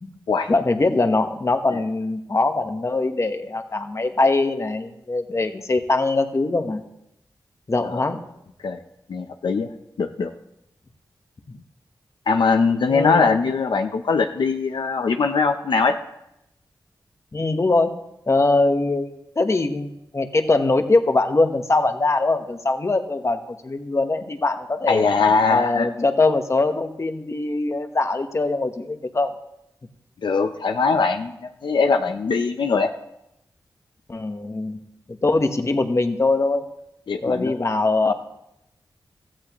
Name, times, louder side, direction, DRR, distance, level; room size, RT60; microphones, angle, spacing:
voice 1, 0.5-6.8 7.7-8.2 12.9-13.2 17.3-17.9 18.3-25.1 25.5-29.3 34.1-34.8 35.2-36.7 37.2-38.1, left 2 dB, 40° left, 6 dB, 1.2 m, -22 dB
voice 2, 9.1-9.7 10.0-10.3 12.3-16.0 24.9-26.1 30.2-32.9 37.1-37.6 38.1-38.2, left 4 dB, 80° left, 6 dB, 0.7 m, -21 dB
16.5 x 14.0 x 3.1 m, 0.84 s
wide cardioid pair, 70°, 8 cm